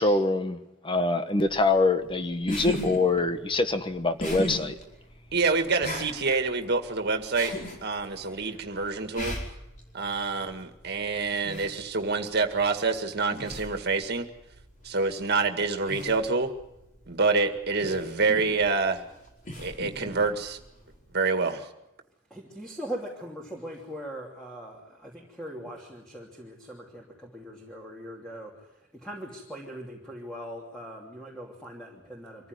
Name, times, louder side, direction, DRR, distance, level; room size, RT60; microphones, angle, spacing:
voice 1, 0.0-4.8, left 2 dB, 25° left, 1.3 m, -25 dB
sound 1, 1.5-21.1, left 1 dB, 40° left, 5.2 m, -39 dB
voice 2, 5.3-7.5 7.8-9.4 9.9-14.3 14.8-16.5 17.1-19.0 19.6-20.6 21.1-21.7, right 4 dB, 55° right, 2.0 m, -27 dB
voice 3, 22.3-32.5, equal, 5° left, 3.0 m, -40 dB
25.0 x 15.0 x 9.7 m
head